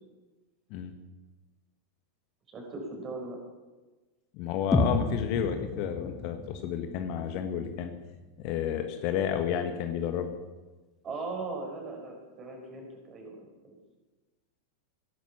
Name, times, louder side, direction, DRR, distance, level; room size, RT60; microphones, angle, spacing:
voice 1, 2.5-3.4 9.5-9.7 11.0-13.5, right 3 dB, 25° right, 1 dB, 5.6 m, -39 dB
voice 2, 4.3-7.9 8.4-10.3, left 9 dB, 45° left, 7 dB, 1.5 m, -31 dB
sound 1, 4.7-8.7, left 2 dB, 10° left, 1.8 m, -32 dB
18.5 x 11.0 x 6.0 m, 1.2 s
figure-of-eight pair, 90°, 0 cm